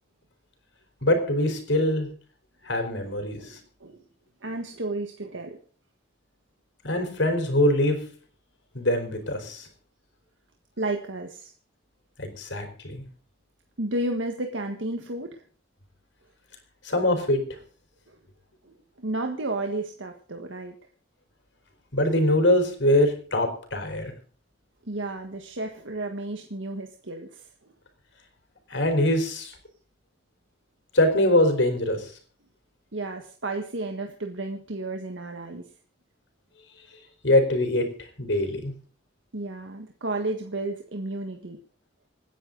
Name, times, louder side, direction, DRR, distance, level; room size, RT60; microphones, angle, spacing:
voice 1, 1.0-2.1 2.6-3.6 6.8-8.0 8.7-9.7 12.2-13.0 16.8-17.4 21.9-24.1 28.7-29.5 30.9-32.1 37.2-37.9 38.2-38.7, left 1 dB, 75° left, 5 dB, 4.4 m, -23 dB
voice 2, 3.4-4.0 4.4-5.6 9.4-9.5 10.8-11.5 13.8-15.4 18.1-18.2 18.6-20.8 24.8-27.5 32.9-35.7 39.3-41.6, right 2 dB, 90° right, 4 dB, 1.6 m, -32 dB
27.5 x 10.0 x 4.0 m, 0.44 s
head